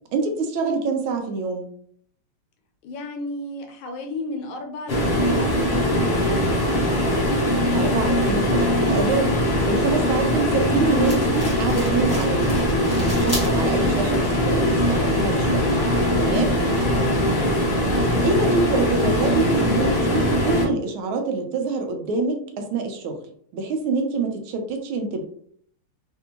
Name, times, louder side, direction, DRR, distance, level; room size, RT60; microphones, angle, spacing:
voice 1, 0.1-1.7 7.5-9.4 9.7-14.2 14.4-15.6 16.2-16.6 18.2-23.2 23.5-25.2, right 3 dB, 75° right, 4 dB, 1.4 m, -26 dB
voice 2, 2.8-5.9 15.9-16.2 16.8-17.1, left 2 dB, 75° left, 3 dB, 1.3 m, -34 dB
sound 1, 4.9-20.6, left 1 dB, 60° left, 0.6 m, -21 dB
sound 2, 11.0-16.3, equal, 10° left, 0.9 m, -36 dB
3.5 x 2.6 x 2.8 m, 0.62 s
omnidirectional pair, 2.3 m